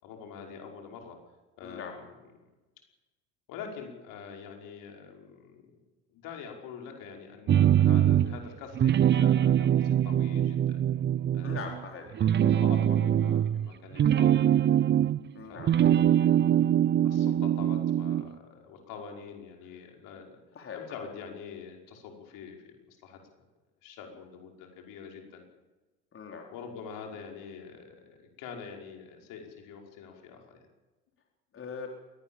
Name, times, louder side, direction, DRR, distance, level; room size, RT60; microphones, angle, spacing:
voice 1, 0.0-1.2 1.6-2.0 3.5-5.8 6.1-10.8 11.3-11.7 12.2-14.6 15.5-16.4 17.0-20.4 20.7-23.2 23.8-25.4 26.5-30.7, left 6 dB, 65° left, 2 dB, 5.5 m, -45 dB
voice 2, 1.6-1.9 11.4-12.1 15.3-15.9 20.5-20.8 26.1-26.5 31.5-31.9, left 6 dB, 35° left, 2 dB, 4.1 m, -41 dB
sound 1, 7.5-8.4 8.7-11.8 12.1-15.3 15.6-18.3, right 10 dB, 30° right, 0.6 m, -23 dB
22.5 x 18.5 x 7.4 m, 1.1 s
hypercardioid pair, 75°, 36 cm